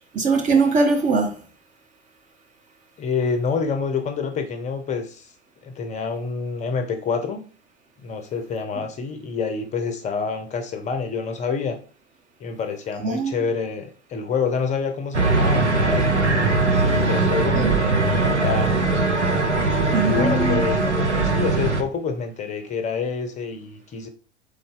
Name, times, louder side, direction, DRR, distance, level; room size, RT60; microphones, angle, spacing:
voice 1, 0.1-1.4 13.0-13.4 17.5-17.7 19.9-20.6, right 3 dB, 25° right, 0.6 m, -21 dB
voice 2, 3.0-5.3 5.6-7.4 8.0-11.8 12.4-16.1 16.8-18.8 19.5-24.1, left 5 dB, 20° left, 0.6 m, -27 dB
sound 1, 15.1-21.8, right 3 dB, 90° right, 0.7 m, -20 dB
4.0 x 3.6 x 3.6 m
figure-of-eight pair, 85°, 34 cm